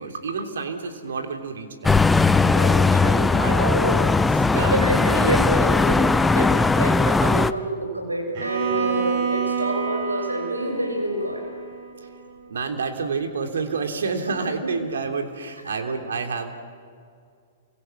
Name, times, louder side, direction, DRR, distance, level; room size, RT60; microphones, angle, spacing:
voice 1, 0.0-1.9 3.3-4.8 8.7-9.5 12.5-16.5, right 5 dB, 65° right, 5 dB, 3.3 m, -29 dB
sound 1, 1.8-7.5, left 3 dB, 10° left, 0.6 m, -19 dB
voice 2, 2.4-4.0 4.7-6.5 6.8-11.4 15.6-15.8, right 1 dB, 90° right, 2 dB, 6.4 m, -27 dB
Bowed string instrument, 8.4-12.4, right 6 dB, 45° right, 5.9 m, -29 dB
29.5 x 23.5 x 7.1 m, 2.2 s
figure-of-eight pair, 110°, 0 cm